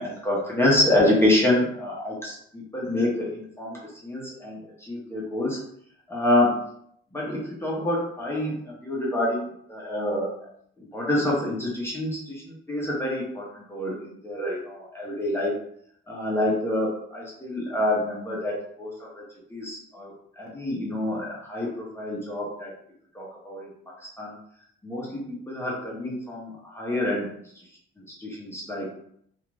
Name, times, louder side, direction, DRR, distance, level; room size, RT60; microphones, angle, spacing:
voice 1, 0.0-5.6 6.1-6.6 7.1-10.3 10.8-15.5 16.1-19.1 19.5-22.7 23.1-23.7 24.2-24.3 24.8-27.3 28.2-28.9, left 1 dB, 10° left, -4 dB, 0.8 m, -27 dB
2.5 x 2.4 x 3.1 m, 0.68 s
cardioid pair, 130°, 21 cm